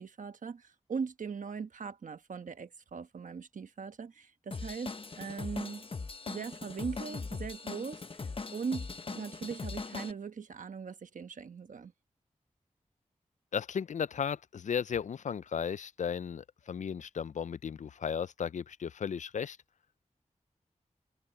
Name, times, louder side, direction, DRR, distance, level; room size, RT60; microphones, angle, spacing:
voice 1, 0.0-5.8 6.3-11.9, right 5 dB, 90° right, 1.2 m, -40 dB
Drum kit / Drum, 4.5-10.1, left 4 dB, 45° left, 0.9 m, -40 dB
voice 2, 13.5-19.6, left 7 dB, 70° left, 0.4 m, -35 dB
wide cardioid pair, 90°, 13 cm